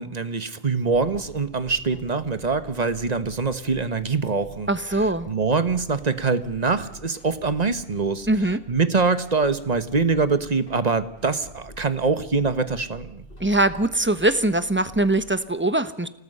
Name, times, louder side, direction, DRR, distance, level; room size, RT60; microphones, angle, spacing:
voice 1, 0.0-4.7 5.3-8.3 8.7-13.2, right 4 dB, 40° right, 11 dB, 1.3 m, -24 dB
sound 1, 0.9-15.4, right 1 dB, 55° left, 4.5 m, -47 dB
voice 2, 4.7-5.3 8.3-8.6 13.4-16.1, right 1 dB, 10° right, 11 dB, 1.1 m, -22 dB
29.5 x 19.0 x 5.6 m, 0.79 s
omnidirectional pair, 1.1 m